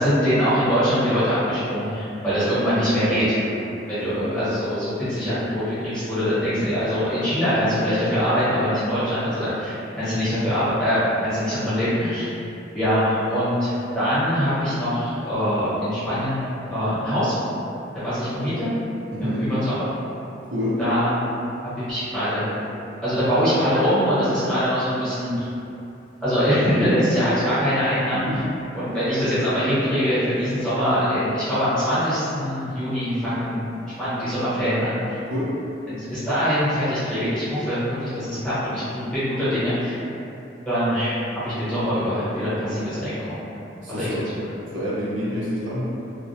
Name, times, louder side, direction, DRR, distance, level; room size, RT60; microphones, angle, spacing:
voice 1, 0.0-3.4 3.9-12.3 12.7-17.3 17.9-18.7 19.2-19.9 20.8-21.2 21.8-22.5 23.0-25.5 26.2-28.2 28.7-33.7 34.0-35.2 35.9-39.9 40.6-41.2 41.4-43.4 43.9-44.1, equal, 5° left, -16 dB, 1.0 m, -23 dB
voice 2, 2.9-3.3 4.0-4.2 19.1-19.5 20.5-20.8 28.3-28.4 35.3-35.5 43.8-44.2 44.7-45.9, equal, 75° right, -9 dB, 0.6 m, -27 dB
2.2 x 2.1 x 2.7 m, 2.7 s
head